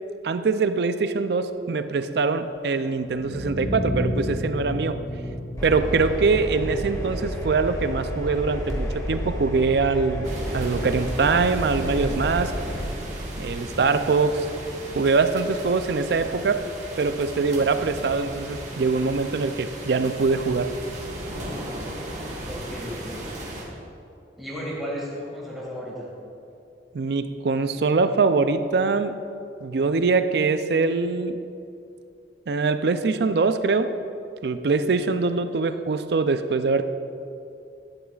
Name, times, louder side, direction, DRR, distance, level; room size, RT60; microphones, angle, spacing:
voice 1, 0.2-5.0 5.6-12.5 13.4-14.5 14.9-16.7 17.0-20.8 26.9-29.2 29.6-31.4 32.5-34.0 34.4-36.9, right 4 dB, 65° right, 11 dB, 0.4 m, -23 dB
sound 1, 3.1-9.0, left 1 dB, 70° left, 1.5 m, -32 dB
Engine, 5.6-12.8, equal, 20° left, 1.5 m, -31 dB
sound 2, 10.2-23.6, right 1 dB, 40° right, 1.5 m, -36 dB
voice 2, 22.5-23.2 24.4-26.1, equal, ahead, -6 dB, 2.1 m, -34 dB
12.0 x 11.0 x 2.4 m, 2.6 s
head